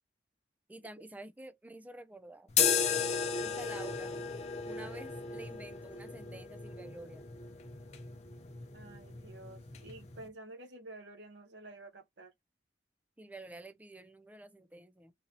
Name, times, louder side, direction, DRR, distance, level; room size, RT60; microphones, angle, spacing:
voice 1, 0.7-2.5 3.4-4.2 4.7-7.2 13.2-15.1, right 2 dB, 10° right, 0.4 m, -49 dB
sound 1, 2.5-10.3, left 6 dB, 40° left, 0.6 m, -35 dB
voice 2, 8.7-12.3, right 2 dB, 85° right, 1.1 m, -50 dB
3.9 x 2.7 x 3.0 m
head